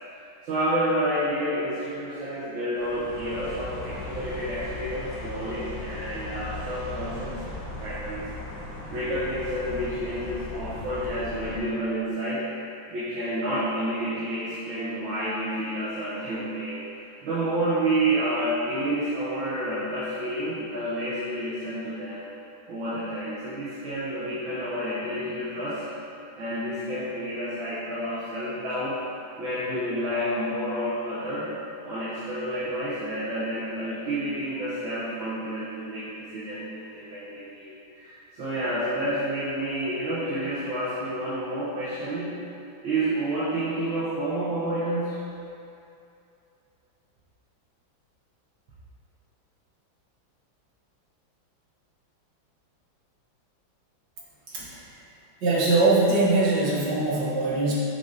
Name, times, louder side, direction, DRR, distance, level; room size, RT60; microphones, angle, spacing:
voice 1, 0.4-7.4 7.8-8.2 8.9-12.5 12.9-16.8 17.2-22.2 22.7-25.8 26.4-29.0 29.4-31.5 31.8-42.3 42.8-45.2, right 1 dB, 80° right, -10 dB, 1.8 m, -29 dB
sound 1, 2.7-11.6, left 2 dB, 80° left, 2.0 m, -37 dB
voice 2, 54.5-54.8 55.4-57.7, right 2 dB, 65° right, -7 dB, 1.9 m, -22 dB
7.6 x 5.0 x 2.7 m, 2.6 s
omnidirectional pair, 2.1 m